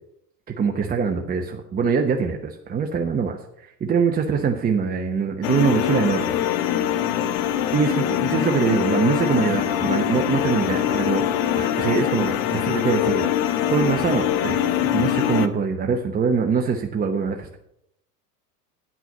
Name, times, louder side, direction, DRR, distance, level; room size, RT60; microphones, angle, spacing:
voice 1, 0.6-6.4 7.7-11.2 11.6-13.3 13.7-17.6, right 6 dB, 20° right, 3 dB, 0.9 m, -23 dB
sound 1, 5.4-15.5, left 11 dB, 50° left, 0.9 m, -23 dB
9.5 x 6.0 x 6.8 m, 0.76 s
figure-of-eight pair, 80°, 49 cm